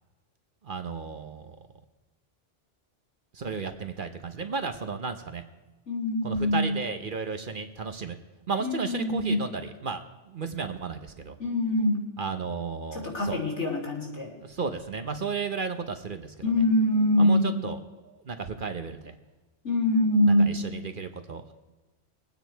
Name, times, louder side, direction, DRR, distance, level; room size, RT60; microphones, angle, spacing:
voice 1, 0.6-1.6 3.3-5.4 6.2-8.2 8.5-10.0 10.3-11.4 12.2-13.4 14.4-16.3 17.2-17.8 18.2-19.1 20.5-21.5, right 5 dB, 50° right, 7 dB, 0.9 m, -33 dB
voice 2, 5.9-6.8 8.6-9.5 11.4-12.0 12.9-14.3 16.4-17.6 19.6-20.7, left 1 dB, 75° left, -1 dB, 3.5 m, -24 dB
21.5 x 9.3 x 4.5 m, 1.2 s
omnidirectional pair, 1.2 m